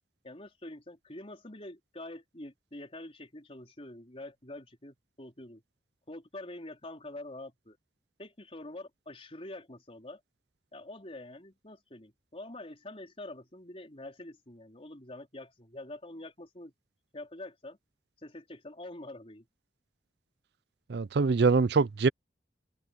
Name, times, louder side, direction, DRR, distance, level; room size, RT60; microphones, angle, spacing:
voice 1, 0.2-5.6 6.1-7.8 8.2-10.2 10.7-16.7 17.1-17.8 18.2-19.5, left 1 dB, 35° left, 4.2 m, -45 dB
voice 2, 20.9-22.1, right 4 dB, 65° right, 0.5 m, -24 dB
head